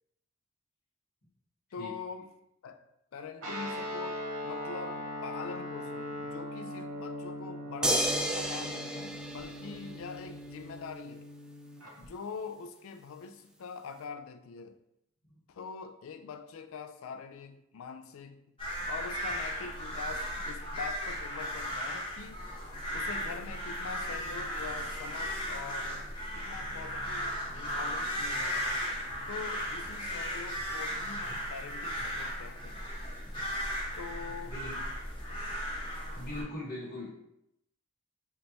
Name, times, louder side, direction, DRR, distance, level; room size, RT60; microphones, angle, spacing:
voice 1, 1.7-2.3 2.6-2.8 3.1-11.3 12.0-14.8 15.5-18.5 18.9-22.4 22.9-28.7 29.3-32.9 34.0-34.6 36.4-36.5, left 5 dB, 70° left, 0.4 m, -44 dB
Guitar, 3.4-11.9, left 1 dB, 90° right, 0.9 m, -40 dB
sound 1, 7.8-10.3 12.0-12.1, equal, 5° right, 0.3 m, -32 dB
sound 2, 18.6-36.4, equal, 25° left, 1.1 m, -36 dB
voice 2, 34.4-34.8 36.1-37.1, left 1 dB, 45° left, 1.1 m, -40 dB
3.3 x 2.9 x 4.0 m
head